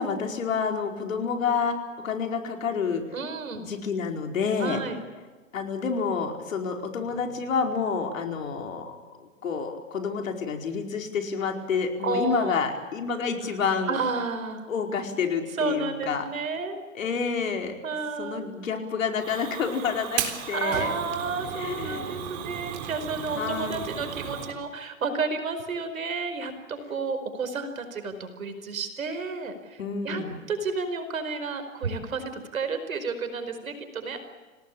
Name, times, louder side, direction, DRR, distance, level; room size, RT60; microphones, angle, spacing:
voice 1, 0.0-3.0 3.6-4.8 5.5-14.0 14.7-16.3 16.9-17.7 18.2-21.0 21.6-22.1 23.3-23.8 29.8-30.4, left 6 dB, 70° left, 4 dB, 4.8 m, -29 dB
voice 2, 3.1-3.6 4.6-5.0 12.0-12.6 13.9-14.6 15.6-16.8 17.8-18.4 20.5-29.8 30.0-30.2 30.5-34.2, right 4 dB, 80° right, 8 dB, 5.0 m, -31 dB
Fire, 19.2-24.5, right 9 dB, 40° right, 3.8 m, -35 dB
27.0 x 18.5 x 8.7 m, 1.4 s
hypercardioid pair, 135°, 41 cm